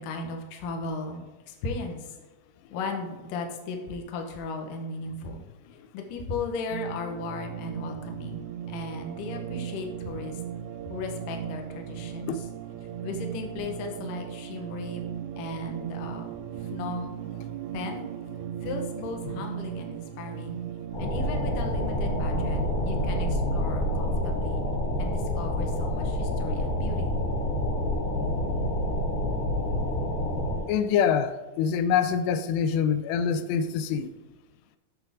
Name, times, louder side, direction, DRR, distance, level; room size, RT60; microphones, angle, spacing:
voice 1, 0.0-2.2 2.7-5.4 5.7-10.4 10.9-12.5 13.0-15.0 15.4-17.2 17.7-18.1 18.6-20.6 21.0-22.6 22.9-24.6 25.0-27.1, left 3 dB, 65° left, 3 dB, 2.4 m, -36 dB
sound 1, 6.7-23.4, right 10 dB, 90° right, 2.7 m, -37 dB
sound 2, 20.9-30.6, left 1 dB, 45° left, 3.8 m, -28 dB
voice 2, 30.7-34.1, left 7 dB, 90° left, 10 dB, 2.7 m, -25 dB
8.1 x 7.6 x 3.6 m, 1.2 s
omnidirectional pair, 4.7 m